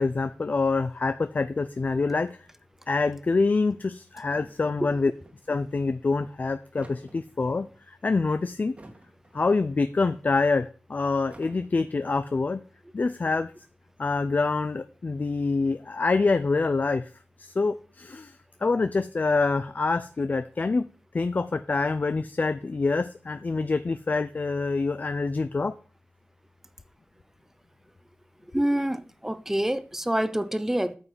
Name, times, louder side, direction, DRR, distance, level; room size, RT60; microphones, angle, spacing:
voice 1, 0.0-2.4 2.9-5.1 5.5-8.8 9.3-12.6 12.9-13.5 14.0-17.1 17.4-20.9 21.1-25.7, left 3 dB, 45° left, 0.5 m, -26 dB
sound 1, 4.2-5.4 6.4-7.8 8.5-9.6 9.8-9.9 11.1-12.1, right 1 dB, 35° right, 1.9 m, -51 dB
voice 2, 28.5-31.0, right 1 dB, 10° right, 0.8 m, -26 dB
9.3 x 5.8 x 8.1 m
wide cardioid pair, 110°, 4 cm